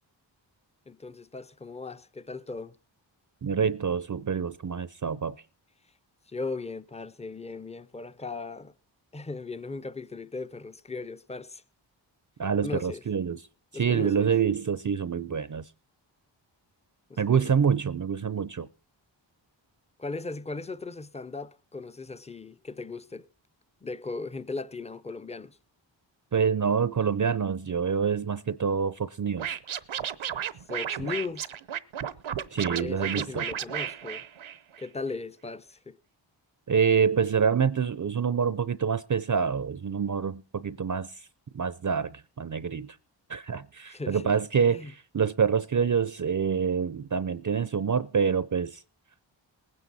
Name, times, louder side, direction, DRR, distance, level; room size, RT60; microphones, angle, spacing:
voice 1, 0.9-2.8 6.3-8.7 9.1-11.6 12.6-13.0 13.7-14.3 17.1-17.5 20.0-23.3 23.8-25.6 30.7-31.5 32.7-34.2 34.8-36.0 43.9-44.3 44.7-44.9, left 3 dB, 15° left, 0.6 m, -37 dB
voice 2, 3.4-5.4 12.4-13.4 13.7-15.7 17.2-18.7 26.3-29.6 32.5-33.4 36.7-41.2 41.5-43.0 43.3-48.8, right 6 dB, 40° right, 0.6 m, -26 dB
Scratching (performance technique), 29.4-34.9, right 9 dB, 80° right, 0.8 m, -33 dB
19.5 x 9.6 x 4.1 m
wide cardioid pair, 60°, 47 cm